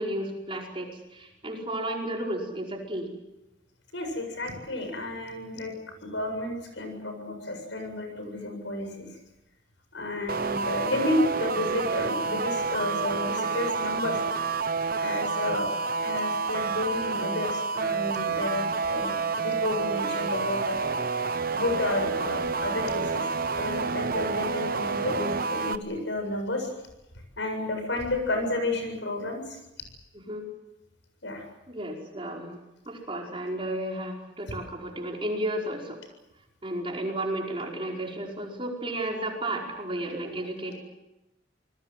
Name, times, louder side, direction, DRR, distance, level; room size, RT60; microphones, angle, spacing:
voice 1, 0.0-3.1 30.1-30.5 31.7-32.6 32.8-36.0 36.6-40.7, right 1 dB, 30° right, 0 dB, 5.1 m, -33 dB
voice 2, 3.9-5.7 6.0-9.1 9.9-14.2 15.0-20.8 21.5-26.7 27.4-29.6 31.2-31.4, left 2 dB, 75° left, 5 dB, 7.6 m, -31 dB
sound 1, 10.3-25.8, right 4 dB, 50° right, 1.0 m, -29 dB
27.5 x 21.0 x 7.6 m, 0.92 s
head